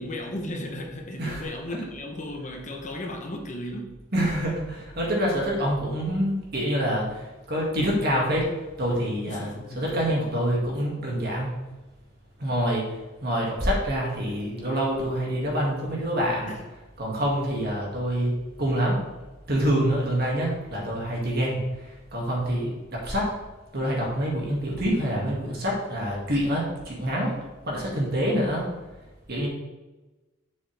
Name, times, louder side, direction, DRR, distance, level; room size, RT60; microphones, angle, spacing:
voice 1, 0.0-4.0 9.3-9.8 16.5-16.6, left 1 dB, 40° left, 2 dB, 0.9 m, -35 dB
voice 2, 4.1-8.5 8.8-9.5 9.8-11.5 12.4-12.8 13.2-16.5 17.0-18.3 18.6-19.0 19.5-21.6 22.1-23.3 23.7-27.3 27.6-28.6 29.3-29.5, equal, 50° right, -3 dB, 2.2 m, -26 dB
7.3 x 6.1 x 3.4 m, 1.1 s
head